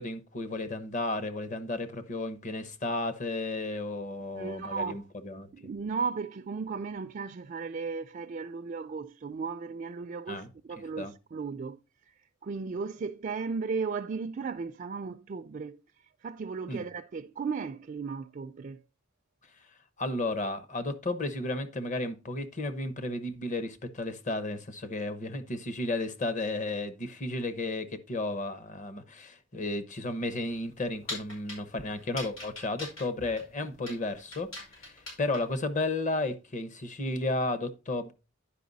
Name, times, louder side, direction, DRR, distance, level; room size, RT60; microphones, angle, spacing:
voice 1, 0.0-5.5 10.3-10.5 11.0-11.1 16.7-16.8 20.0-38.1, left 2 dB, 40° left, 0.9 m, -33 dB
voice 2, 4.4-5.1 5.5-11.8 12.4-15.8 16.2-18.8, right 5 dB, 40° right, 0.4 m, -35 dB
sound 1, 30.5-35.6, left 2 dB, 80° left, 5.1 m, -43 dB
10.0 x 5.4 x 4.0 m
head